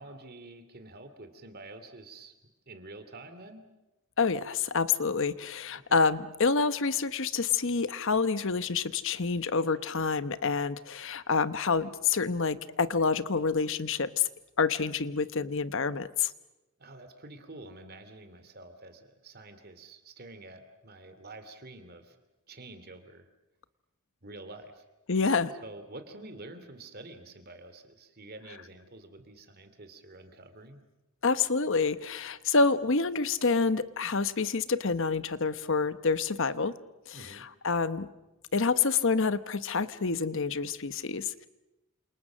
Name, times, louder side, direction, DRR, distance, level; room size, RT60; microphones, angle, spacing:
voice 1, 0.0-2.4 2.7-3.6 5.7-6.1 16.8-22.2 22.5-23.3 24.2-24.8 25.6-30.8 37.1-37.5, right 2 dB, 45° right, 9 dB, 2.7 m, -48 dB
voice 2, 4.2-14.3 14.6-16.3 25.1-25.5 31.2-36.7 37.1-37.2 37.6-38.1 38.5-41.5, left 4 dB, 60° left, 13 dB, 1.0 m, -27 dB
28.5 x 27.5 x 6.3 m, 0.98 s
head